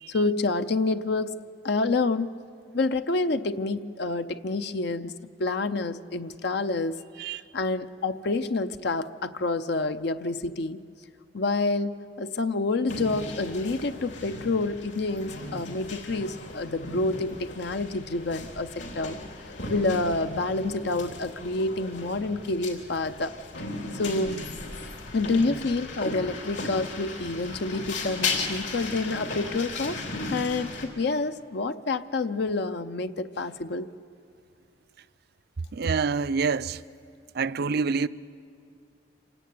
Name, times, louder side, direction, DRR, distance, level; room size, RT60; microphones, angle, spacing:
voice 1, 0.1-1.3 1.6-2.3 2.7-5.1 5.4-7.0 7.3-10.8 11.3-19.2 19.7-23.3 23.9-24.4 25.1-33.9, left 3 dB, 65° left, 0.6 m, -28 dB
sound 1, 12.9-30.8, left 3 dB, 80° left, 3.5 m, -36 dB
voice 2, 35.7-36.8 37.3-38.1, right 5 dB, 60° right, 0.5 m, -26 dB
26.5 x 17.0 x 9.4 m
head